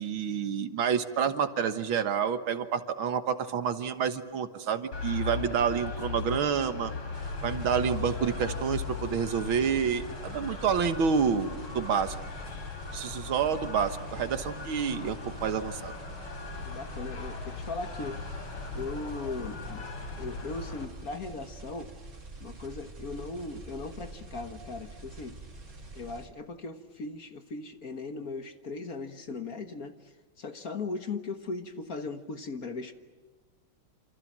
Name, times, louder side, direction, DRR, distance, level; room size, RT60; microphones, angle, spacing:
voice 1, 0.0-6.9 7.4-11.5 11.7-12.2 12.9-15.9, right 7 dB, 70° right, 10 dB, 2.1 m, -28 dB
sound 1, 4.9-20.9, left 5 dB, 85° left, 4.0 m, -38 dB
sound 2, 7.1-26.3, right 2 dB, 40° right, 4.0 m, -46 dB
voice 2, 16.6-18.4 18.7-19.8 20.2-21.9 22.4-25.4 25.9-32.9, left 3 dB, 45° left, 8 dB, 1.7 m, -38 dB
28.0 x 27.5 x 7.5 m, 1.3 s
omnidirectional pair, 2.3 m